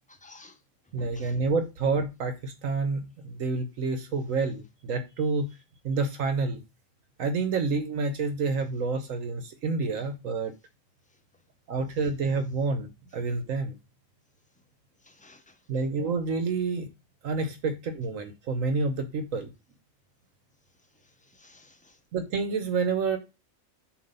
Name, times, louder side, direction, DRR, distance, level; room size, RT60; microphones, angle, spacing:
voice 1, 0.1-0.6 1.0-1.4 15.0-15.5 21.3-22.0, left 2 dB, 10° left, 0.3 m, -52 dB
voice 2, 0.9-5.4 5.8-6.6 7.2-10.5 11.7-12.9 13.1-13.7 15.7-16.9 17.2-19.5 22.1-23.2, right 4 dB, 75° right, 1.2 m, -28 dB
7.2 x 2.7 x 5.3 m
omnidirectional pair, 1.4 m